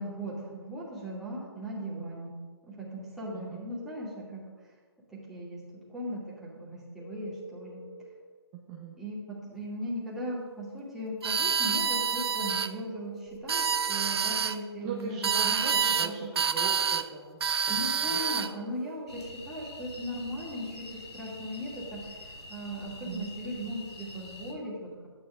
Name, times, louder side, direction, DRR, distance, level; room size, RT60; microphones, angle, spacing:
voice 1, 0.0-2.3 2.6-4.4 5.1-5.6 5.9-7.8 9.0-16.3 17.7-25.1, equal, ahead, -7 dB, 2.5 m, -38 dB
sound 1, 7.0-8.1 12.1-14.1 18.1-19.0, equal, 55° left, 3.3 m, -47 dB
voice 2, 8.5-9.0 14.8-17.4 17.7-18.2 23.0-23.3 23.6-23.7, right 4 dB, 20° right, -2 dB, 1.1 m, -40 dB
sound 2, 11.2-12.7 13.3-14.6 15.2-16.1 16.4-17.1 17.4-18.5, right 6 dB, 70° right, 0.6 m, -27 dB
sound 3, 19.1-24.5, left 2 dB, 80° left, 3.0 m, -46 dB
12.0 x 9.6 x 3.7 m, 1.5 s
hypercardioid pair, 150°, 14 cm